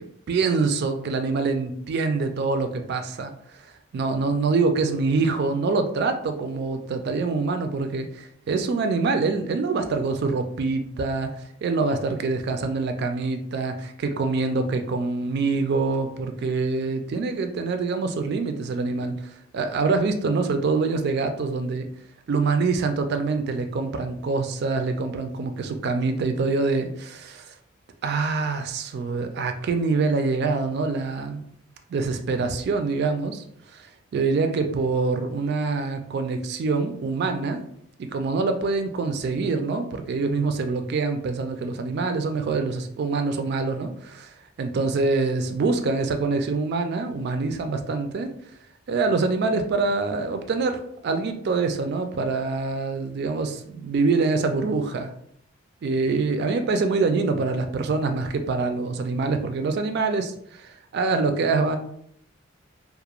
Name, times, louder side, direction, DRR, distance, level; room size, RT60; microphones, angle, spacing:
voice 1, 0.0-3.3 3.6-11.3 11.6-21.9 22.3-27.4 28.0-31.4 31.9-33.4 33.7-37.6 38.0-48.3 48.9-55.1 55.8-61.8, right 4 dB, 55° right, 7 dB, 0.3 m, -25 dB
2.4 x 2.0 x 2.9 m, 0.69 s
head